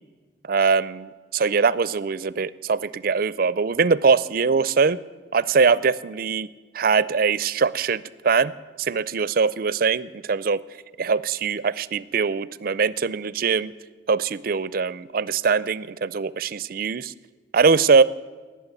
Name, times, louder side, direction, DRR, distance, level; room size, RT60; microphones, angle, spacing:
voice 1, 0.5-5.0 5.3-6.5 6.7-8.5 8.8-10.6 11.0-13.7 14.1-17.1 17.5-18.0, right 5 dB, 50° right, 18 dB, 0.4 m, -22 dB
19.0 x 7.4 x 9.5 m, 1.4 s
head